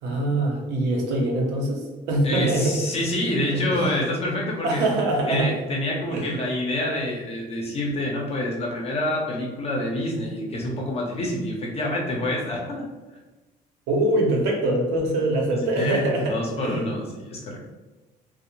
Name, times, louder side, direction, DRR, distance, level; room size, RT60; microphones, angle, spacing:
voice 1, 0.0-2.8 3.5-3.9 4.6-5.5 6.1-6.3 13.9-16.9, right 1 dB, 90° right, -1 dB, 0.7 m, -24 dB
voice 2, 2.2-4.8 5.3-12.8 15.5-17.7, left 1 dB, 35° left, -2 dB, 0.7 m, -27 dB
2.5 x 2.0 x 3.0 m, 1.2 s
cardioid pair, 110°, 17 cm